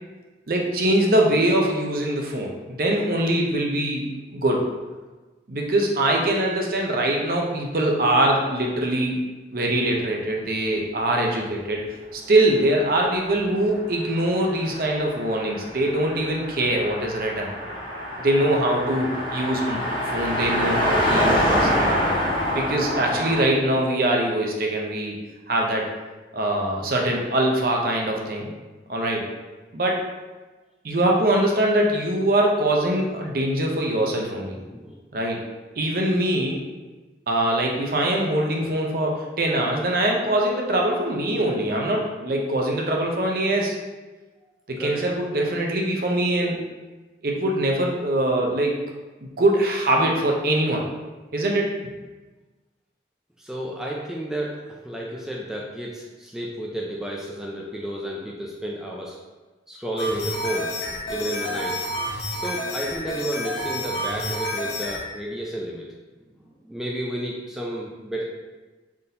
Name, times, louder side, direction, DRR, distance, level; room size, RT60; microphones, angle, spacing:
voice 1, 0.5-4.7 5.5-9.2 9.5-11.8 12.1-17.5 18.2-19.8 20.1-22.0 22.5-25.2 25.5-25.9 26.3-28.5 28.9-29.2 29.7-30.0 30.8-34.6 35.1-35.4 35.8-36.6 37.3-43.8 44.7-46.6 47.2-48.8 49.2-50.9 51.3-51.7, right 1 dB, 55° right, 0 dB, 0.6 m, -23 dB
Car passing by, 13.3-23.4, equal, 30° left, 0.8 m, -26 dB
voice 2, 34.6-35.0 44.8-45.0 53.4-59.2 59.7-60.7 61.1-61.9 62.3-65.9 66.4-68.2, right 1 dB, 5° right, -3 dB, 0.3 m, -31 dB
sound 1, 60.0-65.0, left 1 dB, 70° left, 1.1 m, -29 dB
3.9 x 3.6 x 2.8 m, 1.2 s
head